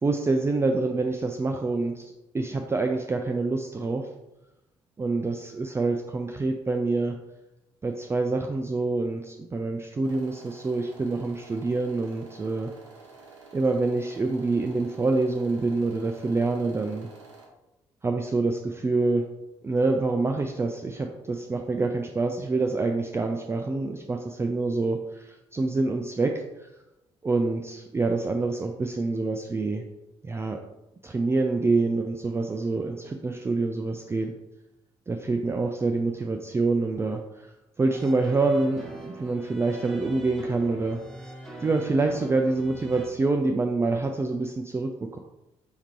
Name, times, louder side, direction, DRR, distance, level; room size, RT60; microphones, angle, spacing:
voice 1, 0.0-4.1 5.0-7.2 7.8-12.7 13.5-17.1 18.0-19.2 19.6-26.3 26.6-26.7 27.2-29.8 30.2-30.6 31.0-34.3 35.1-37.5 37.8-41.0 41.6-45.2, right 3 dB, 15° right, 3 dB, 0.4 m, -26 dB
sound 1, 10.0-17.5, right 3 dB, 85° right, 0.6 m, -50 dB
sound 2, 37.9-43.1, right 1 dB, ahead, 1.3 m, -42 dB
4.5 x 3.5 x 3.0 m, 0.95 s
figure-of-eight pair, 45°, 15 cm